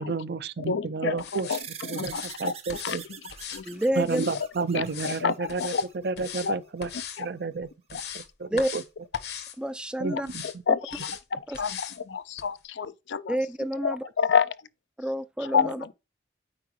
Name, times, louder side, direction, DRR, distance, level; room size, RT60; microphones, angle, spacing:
voice 1, 0.0-1.6 1.8-3.0 4.0-5.7 6.0-6.9 7.2-7.7 8.1-8.8 10.0-10.6, right 4 dB, 60° right, 0.5 m, -31 dB
voice 2, 0.7-1.6 1.9-2.5 2.8-3.0 3.5-3.8 4.7-5.8 6.4-6.5 7.2-7.3 10.1-10.2 10.7-13.4 13.8-14.5 15.4-15.9, left 6 dB, 80° left, 0.5 m, -28 dB
sound 1, 1.2-1.6 2.1-2.4 2.7-3.0 3.3-4.4 4.9-5.2 5.5-5.9 6.2-6.5 6.8-7.2 7.6-8.3 8.6-8.9 9.1-9.6 10.2-10.5 10.9-11.2 11.5-12.0 12.4-12.5, left 8 dB, 60° left, 1.0 m, -39 dB
sound 2, 1.5-6.4, right 8 dB, 35° right, 0.8 m, -44 dB
voice 3, 3.7-4.2 8.5-8.7 9.6-10.3 11.5-11.6 13.3-14.0 15.0-15.8, right 1 dB, 5° right, 0.4 m, -28 dB
8.7 x 4.6 x 3.2 m
head